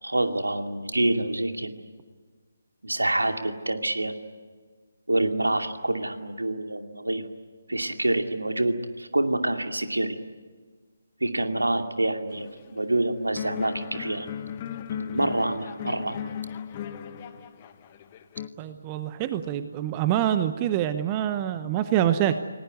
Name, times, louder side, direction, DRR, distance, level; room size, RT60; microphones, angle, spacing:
voice 1, 0.0-1.8 2.8-4.1 5.1-7.3 7.7-10.2 11.2-14.3 14.9-16.3, right 1 dB, 75° right, 6 dB, 2.5 m, -27 dB
sound 1, 12.3-13.0 13.4-18.5, left 9 dB, 25° left, 1.3 m, -37 dB
voice 2, 18.6-22.4, right 11 dB, 20° right, 11 dB, 0.9 m, -25 dB
29.5 x 19.0 x 9.5 m, 1.5 s
figure-of-eight pair, 145°, 0 cm